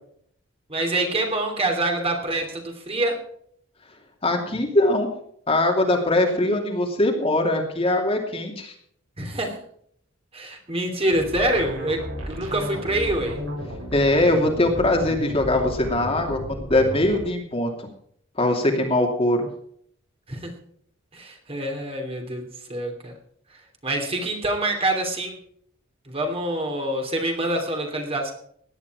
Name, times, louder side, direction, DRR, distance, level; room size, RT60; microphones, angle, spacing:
voice 1, 0.7-3.2 9.2-9.6 10.3-13.4 20.3-20.5 21.1-23.1 23.8-25.3 26.1-28.3, right 1 dB, 30° right, 3 dB, 3.0 m, -26 dB
voice 2, 4.2-5.1 5.5-8.7 13.9-17.7 18.4-19.5, left 1 dB, 30° left, 2 dB, 2.7 m, -21 dB
sound 1, 11.1-17.2, equal, 75° right, 7.1 m, -34 dB
17.5 x 11.0 x 4.8 m, 0.66 s
head